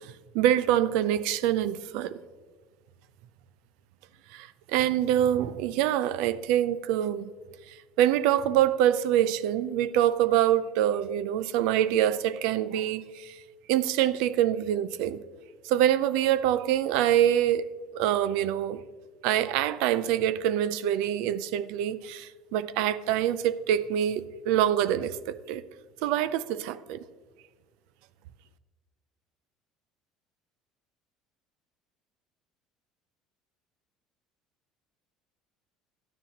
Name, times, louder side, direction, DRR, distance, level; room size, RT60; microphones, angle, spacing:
voice 1, 0.0-2.2 4.3-7.3 7.7-13.4 13.7-15.2 15.6-17.7 17.9-18.8 19.2-25.6 26.0-27.0, right 11 dB, 80° right, 0.4 m, -25 dB
11.5 x 9.8 x 2.9 m
cardioid pair, 150°, 0 cm